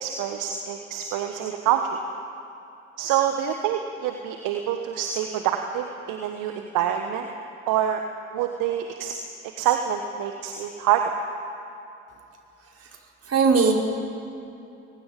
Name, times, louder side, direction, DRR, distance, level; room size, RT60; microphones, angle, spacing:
voice 1, 0.0-1.9 3.0-7.3 7.7-8.0 8.3-9.1 9.6-11.1, right 10 dB, 65° right, 5 dB, 1.5 m, -26 dB
voice 2, 12.6-13.0 13.2-13.7, right 5 dB, 45° right, -1 dB, 5.5 m, -21 dB
30.0 x 23.0 x 5.4 m, 2.8 s
figure-of-eight pair, 50°, 35 cm